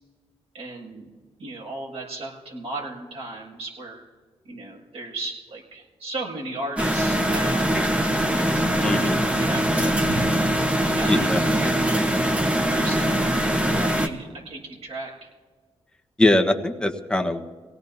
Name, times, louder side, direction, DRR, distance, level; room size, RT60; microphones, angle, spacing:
voice 1, 0.5-1.1 1.4-4.0 4.4-7.7 8.3-9.1 9.4-10.3 10.8-11.8 12.6-13.4 13.7-15.3, right 2 dB, 70° right, -3 dB, 6.5 m, -35 dB
sound 1, 6.8-14.1, right 1 dB, 10° right, 1.3 m, -22 dB
voice 2, 8.8-9.2 11.0-11.4 16.2-17.4, left 1 dB, 10° left, 3 dB, 1.2 m, -21 dB
25.5 x 17.5 x 2.8 m, 1.5 s
cardioid pair, 90°, 11 cm